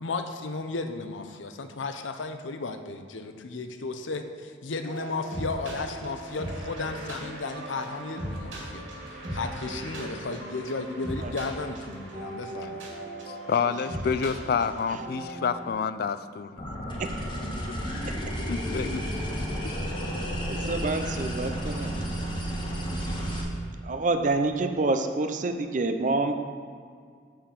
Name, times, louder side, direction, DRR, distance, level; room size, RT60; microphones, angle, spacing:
voice 1, 0.0-12.9, left 3 dB, 90° left, 7 dB, 0.7 m, -34 dB
sound 1, 4.8-15.7, right 1 dB, 90° right, 2.5 m, -38 dB
voice 2, 13.5-16.7 18.5-19.0, left 6 dB, 55° left, 13 dB, 0.3 m, -28 dB
sound 2, 16.6-23.4, equal, 25° left, 1.3 m, -32 dB
voice 3, 20.5-22.1 23.8-26.3, right 2 dB, 40° right, 8 dB, 0.6 m, -27 dB
6.6 x 5.8 x 7.3 m, 2.1 s
head